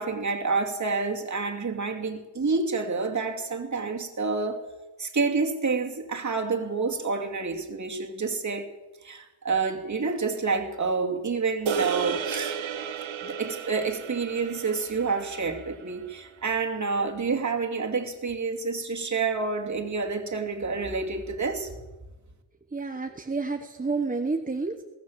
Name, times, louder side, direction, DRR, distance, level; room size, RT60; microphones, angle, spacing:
voice 1, 0.0-4.6 5.0-8.7 9.0-12.6 13.2-21.7, right 4 dB, 40° right, 3 dB, 2.7 m, -28 dB
sound 1, 11.7-16.1, right 6 dB, 75° right, 1.5 m, -33 dB
voice 2, 22.7-24.8, right 3 dB, 20° right, 4 dB, 1.1 m, -30 dB
22.0 x 17.5 x 7.4 m, 1.1 s
wide cardioid pair, 180°, 46 cm